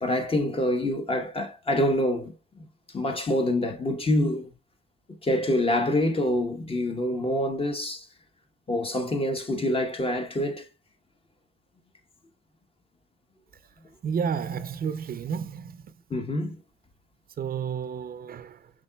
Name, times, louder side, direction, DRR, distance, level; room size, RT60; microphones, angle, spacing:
voice 1, 0.0-2.7 2.9-4.5 5.1-8.1 8.7-10.7 16.1-16.6, left 1 dB, 30° left, 0.9 m, -26 dB
voice 2, 14.0-15.8 17.4-18.7, right 7 dB, 50° right, 0.5 m, -31 dB
5.1 x 3.7 x 2.2 m
cardioid pair, 90°, 20 cm